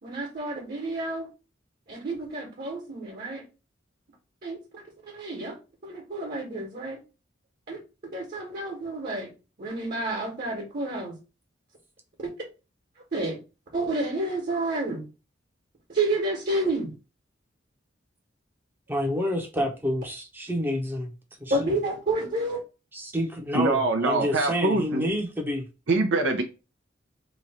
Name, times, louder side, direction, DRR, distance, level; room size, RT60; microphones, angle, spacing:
voice 1, 0.0-1.3 1.9-3.4 4.4-5.6 5.8-7.0 7.7-7.8 8.1-9.3 9.6-11.1 12.2-12.3 13.1-13.4 13.7-15.1 15.9-16.9 21.5-22.6, right 2 dB, 50° right, 1.3 m, -30 dB
voice 2, 18.9-21.1 21.4-21.7 22.9-25.7, equal, 10° right, 0.8 m, -29 dB
voice 3, 23.5-25.1 25.9-26.4, right 2 dB, 75° right, 0.7 m, -24 dB
3.1 x 2.5 x 4.2 m
head